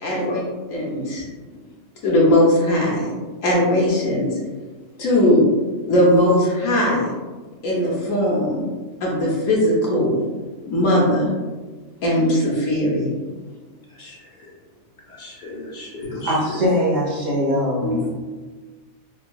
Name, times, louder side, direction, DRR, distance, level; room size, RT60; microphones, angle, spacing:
voice 1, 0.0-0.4 0.7-1.2 2.0-3.1 3.4-4.4 5.0-5.5 5.8-7.1 7.6-8.7 9.0-10.2 10.7-11.3 12.0-13.1 16.1-16.2, left 1 dB, 70° left, -4 dB, 1.1 m, -19 dB
voice 2, 13.9-14.5 15.1-16.6 17.8-18.0, left 1 dB, 40° left, -4 dB, 0.7 m, -33 dB
voice 3, 16.2-18.1, equal, 45° right, -5 dB, 0.6 m, -21 dB
3.6 x 2.3 x 2.2 m, 1.3 s
omnidirectional pair, 1.5 m